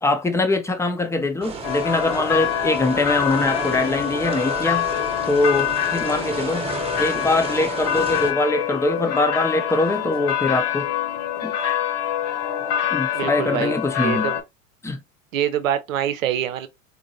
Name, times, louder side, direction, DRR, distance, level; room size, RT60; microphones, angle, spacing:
voice 1, 0.0-4.9 5.3-6.7 7.0-10.9 11.4-11.5 12.9-14.3 14.8-15.0, left 2 dB, 5° left, 0.5 m, -23 dB
sound 1, 1.4-8.3, right 3 dB, 15° right, 0.9 m, -32 dB
Church Prizren Kosovo, 1.6-14.4, left 10 dB, 45° left, 0.9 m, -25 dB
voice 2, 13.1-14.4 15.3-16.7, right 10 dB, 75° right, 0.7 m, -25 dB
4.2 x 2.6 x 2.7 m
hypercardioid pair, 90°, 40 cm